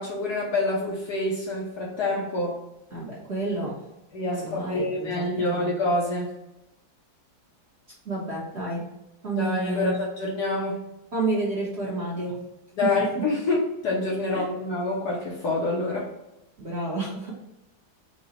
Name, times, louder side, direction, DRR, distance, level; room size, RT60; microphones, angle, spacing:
voice 1, 0.0-2.6 4.1-6.3 9.3-10.8 12.8-16.1, left 2 dB, 60° left, -3 dB, 1.2 m, -27 dB
voice 2, 2.9-3.7 4.3-5.7 8.0-8.8 9.2-9.9 11.1-12.3 13.0-13.2 14.3-14.4 16.6-17.3, right 2 dB, 40° right, -6 dB, 1.2 m, -30 dB
4.9 x 2.3 x 4.1 m, 0.94 s
omnidirectional pair, 2.2 m